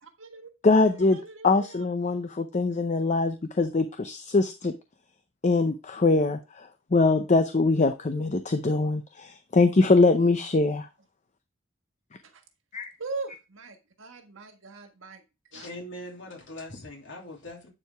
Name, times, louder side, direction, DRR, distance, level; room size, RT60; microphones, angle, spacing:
voice 1, 0.0-1.8 10.6-10.7 12.2-12.4 13.0-15.2 15.5-15.7, right 3 dB, 85° right, 1.5 m, -41 dB
voice 2, 0.6-1.2 1.4-4.7 5.4-10.9 12.7-12.9, left 3 dB, 40° left, 0.6 m, -23 dB
voice 3, 15.5-17.7, left 1 dB, 65° left, 2.8 m, -41 dB
9.8 x 4.7 x 3.4 m
head